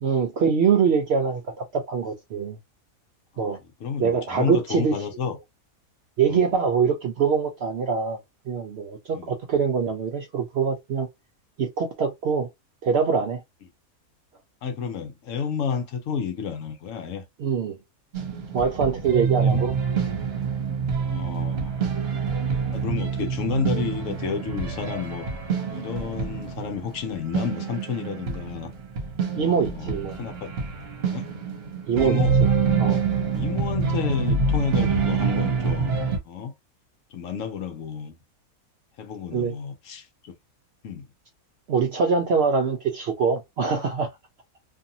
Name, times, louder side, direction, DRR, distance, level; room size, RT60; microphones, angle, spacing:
voice 1, 0.0-2.6 3.4-3.6 4.0-5.0 6.2-8.2 8.5-11.1 11.6-12.5 12.8-13.4 17.4-17.8 18.5-19.7 29.3-30.2 31.9-32.2 32.8-33.0 39.3-39.6 41.7-44.1, right 6 dB, 70° right, 0.6 m, -24 dB
voice 2, 3.6-5.4 6.3-6.5 9.1-9.3 14.6-17.2 19.4-19.6 21.0-21.8 22.7-25.3 25.7-28.7 29.4-30.5 31.1-31.2 32.0-32.4 33.3-36.5 37.1-38.1 39.0-40.3 40.8-41.1, left 6 dB, 65° left, 1.0 m, -31 dB
sound 1, 18.1-36.2, right 5 dB, 50° right, 1.0 m, -26 dB
2.6 x 2.5 x 2.7 m
omnidirectional pair, 1.5 m